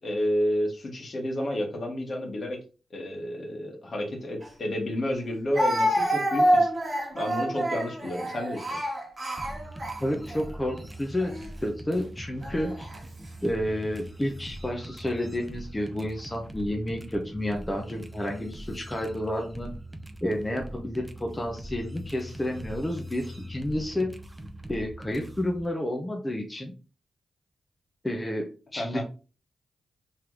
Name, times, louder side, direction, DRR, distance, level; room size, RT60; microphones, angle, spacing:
voice 1, 0.0-2.6 2.9-6.7 7.1-8.8 28.8-29.0, equal, 55° left, 1 dB, 1.4 m, -30 dB
Speech, 4.4-4.5 5.5-10.4 11.2-11.5 12.4-13.0, equal, 40° right, 1.4 m, -27 dB
sound 1, 9.4-25.7, right 1 dB, 15° right, 0.6 m, -42 dB
voice 2, 10.0-12.9 13.4-19.7 20.2-24.1 24.7-26.7 28.0-29.0, left 1 dB, 15° left, 1 dB, 0.8 m, -30 dB
3.3 x 3.1 x 3.8 m, 0.34 s
cardioid pair, 70°, 0 cm